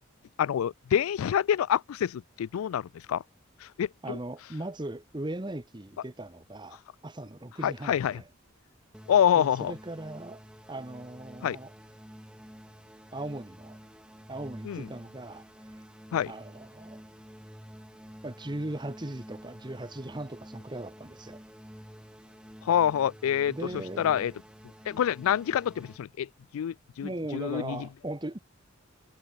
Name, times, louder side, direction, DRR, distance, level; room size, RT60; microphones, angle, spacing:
voice 1, 0.4-3.2 3.6-4.2 7.6-8.2 9.1-9.7 11.4-11.6 14.7-14.9 16.1-16.3 22.7-23.6 24.0-24.3 24.9-27.9, left 9 dB, 85° left, 0.3 m, -27 dB
voice 2, 4.0-8.3 9.3-10.4 10.7-11.7 13.1-13.8 14.3-15.8 16.3-17.0 18.2-21.4 23.5-24.3 27.0-28.4, right 1 dB, 20° right, 1.0 m, -38 dB
sound 1, 8.9-26.0, equal, 5° right, 1.9 m, -50 dB
head